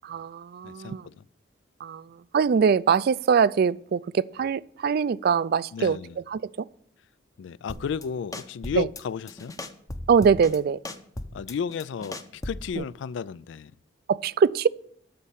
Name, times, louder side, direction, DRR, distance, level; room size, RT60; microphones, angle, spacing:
voice 1, 0.0-1.1 1.8-2.1 2.3-6.0 6.3-6.7 8.8-8.9 10.1-10.8 12.8-12.9 14.1-14.7, right 6 dB, 55° right, 0.3 m, -23 dB
voice 2, 0.6-1.2 5.7-6.2 7.4-9.5 11.3-13.7, left 6 dB, 70° left, 0.3 m, -33 dB
sound 1, 7.7-8.0 8.3-9.0 9.3-10.6 10.8-12.7, left 1 dB, 20° left, 0.7 m, -37 dB
12.5 x 4.3 x 8.3 m
head